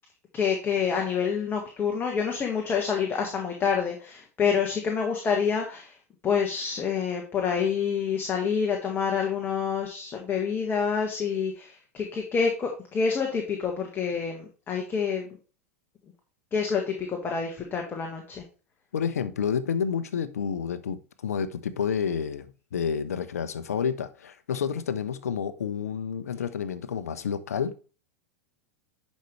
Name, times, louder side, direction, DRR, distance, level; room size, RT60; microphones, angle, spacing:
voice 1, 0.3-6.0 6.2-15.3 16.5-18.4, left 6 dB, 25° left, 1.6 m, -27 dB
voice 2, 18.9-27.7, left 7 dB, 75° left, 0.8 m, -29 dB
10.5 x 5.4 x 3.2 m
hypercardioid pair, 90°, 8 cm